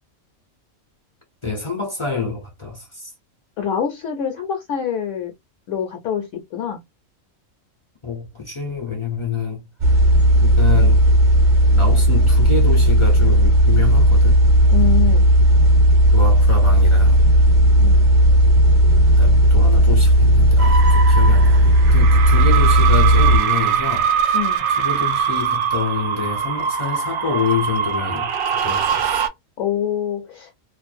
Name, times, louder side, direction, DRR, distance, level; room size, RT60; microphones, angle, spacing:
voice 1, 1.4-3.1 8.0-9.7 10.4-11.0 11.7-14.4 15.8-17.3 19.2-24.4 24.7-29.2, left 5 dB, 45° left, 0.3 m, -27 dB
voice 2, 3.6-5.3 5.7-6.8 14.7-15.3 17.8-18.0 24.3-24.6 29.6-30.5, left 8 dB, 70° left, 0.9 m, -25 dB
sound 1, 9.8-23.4, equal, 45° right, 0.7 m, -14 dB
sound 2, 20.6-29.3, right 7 dB, 70° right, 1.0 m, -22 dB
2.5 x 2.1 x 2.4 m
omnidirectional pair, 1.5 m